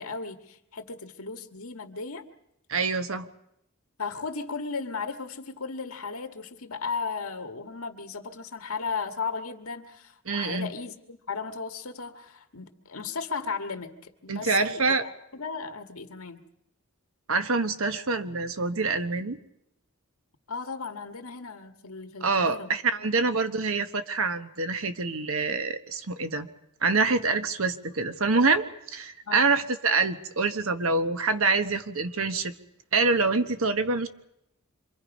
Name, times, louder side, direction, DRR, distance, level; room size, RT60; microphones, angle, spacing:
voice 1, 0.0-2.3 4.0-16.5 20.5-22.7 23.0-23.1 29.2-29.5, left 4 dB, 85° left, 6 dB, 1.8 m, -36 dB
voice 2, 2.7-3.3 10.3-10.7 14.3-15.0 17.3-19.4 22.2-26.5 26.8-32.5 32.9-34.1, right 3 dB, 65° right, 9 dB, 1.3 m, -26 dB
27.0 x 23.5 x 5.4 m, 0.80 s
head